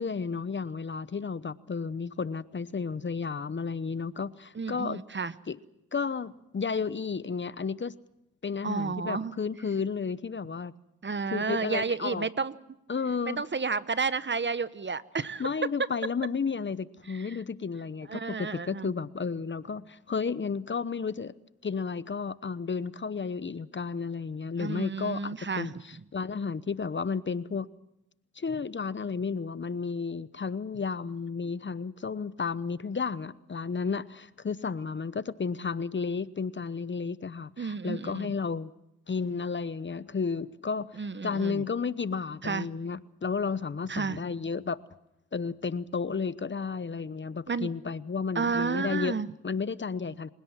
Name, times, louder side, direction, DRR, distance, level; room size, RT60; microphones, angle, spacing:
voice 1, 0.0-5.0 5.5-5.6 5.9-7.9 8.4-10.7 11.3-12.3 12.9-13.4 15.4-21.3 21.6-27.7 28.3-38.7 39.1-44.8 45.3-49.2 49.4-50.3, left 5 dB, 35° left, 17 dB, 0.9 m, -32 dB
voice 2, 4.5-5.3 8.6-9.3 11.0-12.5 13.2-15.5 17.1-17.4 18.1-18.9 24.6-25.7 37.6-38.3 41.0-41.7 42.4-42.7 43.9-44.2 47.5-47.7 48.3-49.3, right 5 dB, 35° right, 15 dB, 1.1 m, -31 dB
28.0 x 17.0 x 7.5 m, 0.82 s
cardioid pair, 60°, 32 cm